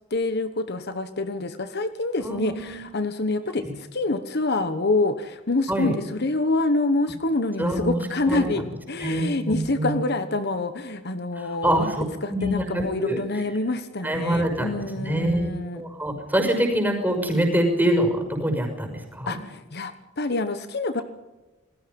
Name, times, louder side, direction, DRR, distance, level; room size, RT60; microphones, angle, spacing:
voice 1, 0.1-11.9 12.2-15.8 19.3-21.0, left 2 dB, 55° left, 10 dB, 1.3 m, -26 dB
voice 2, 2.2-2.8 3.6-3.7 5.7-5.9 7.6-8.5 9.0-10.0 11.3-12.0 12.3-13.2 14.0-19.4, right 1 dB, 10° right, 4 dB, 6.1 m, -25 dB
28.0 x 20.0 x 5.5 m, 1.1 s
head